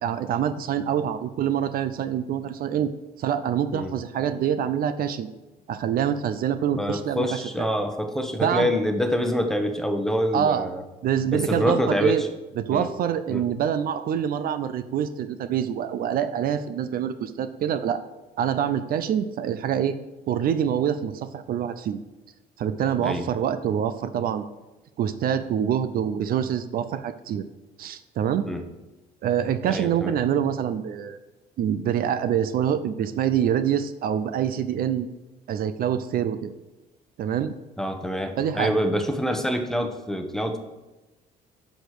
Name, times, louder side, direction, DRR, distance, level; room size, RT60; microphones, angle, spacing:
voice 1, 0.0-2.9 3.2-5.3 5.7-7.7 8.4-8.7 10.3-10.7 11.0-12.2 12.6-18.0 18.4-20.0 20.3-22.0 22.6-24.4 25.0-27.4 27.8-28.5 29.2-31.2 31.6-35.1 35.5-36.5 37.2-37.5 38.4-38.7, right 9 dB, 60° right, 11 dB, 0.6 m, -25 dB
voice 2, 6.8-10.8 11.3-12.3 12.7-12.9 13.3-13.4 23.0-23.3 28.4-28.6 29.7-30.1 37.8-40.6, equal, 5° left, 5 dB, 1.1 m, -26 dB
8.0 x 6.5 x 6.5 m, 1.1 s
cardioid pair, 110°, 17 cm